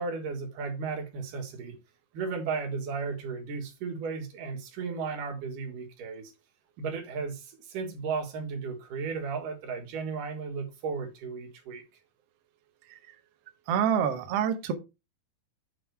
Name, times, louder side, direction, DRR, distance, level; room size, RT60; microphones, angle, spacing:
voice 1, 0.0-1.7 2.1-6.3 6.8-11.8, right 5 dB, 60° right, 3.2 m, -35 dB
voice 2, 13.7-14.7, right 8 dB, 90° right, 1.3 m, -26 dB
6.8 x 5.8 x 4.6 m
omnidirectional pair, 4.3 m